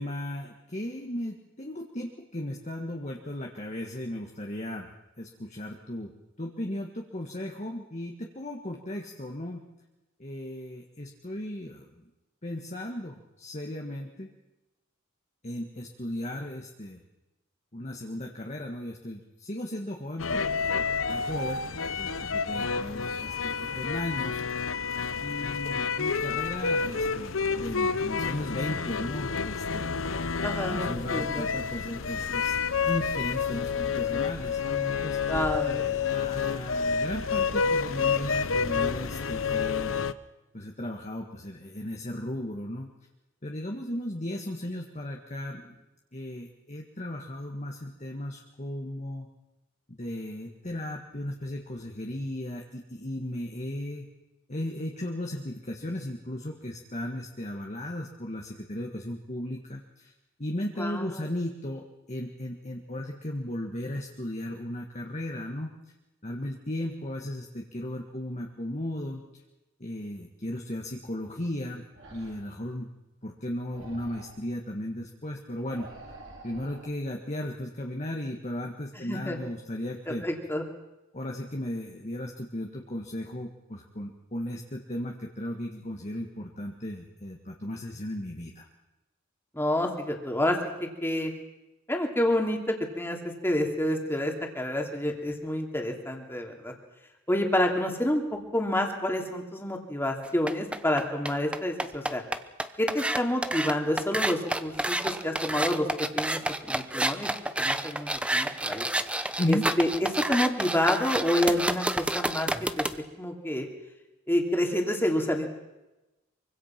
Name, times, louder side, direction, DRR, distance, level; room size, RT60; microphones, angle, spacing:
voice 1, 0.0-4.9 5.2-9.6 10.2-12.0 12.4-14.3 15.4-17.0 17.7-24.4 25.2-29.9 30.7-32.6 32.8-35.2 35.8-39.9 40.5-42.9 43.4-45.7 46.1-49.3 49.9-54.1 54.5-60.1 60.4-65.7 66.2-69.2 69.8-72.9 73.2-75.9 76.4-80.3 81.1-88.7 109.4-109.7, left 1 dB, 35° left, 1 dB, 1.8 m, -36 dB
sound 1, 20.2-40.1, left 5 dB, 70° left, 0.9 m, -29 dB
voice 2, 30.4-31.5 35.3-35.8 60.8-61.3 79.0-79.4 80.2-80.6 89.5-91.3 91.9-93.2 93.4-96.7 97.3-102.2 102.8-106.4 106.7-107.3 107.6-108.9 109.5-112.5 112.8-112.9 113.1-113.7 114.3-115.5, left 1 dB, 10° left, 2 dB, 2.9 m, -28 dB
sound 2, 71.9-72.6 73.7-74.5 75.7-76.9, right 2 dB, 65° right, 4.7 m, -47 dB
sound 3, 100.2-112.9, right 1 dB, 5° right, 0.8 m, -29 dB
24.5 x 24.5 x 6.0 m, 1.0 s
head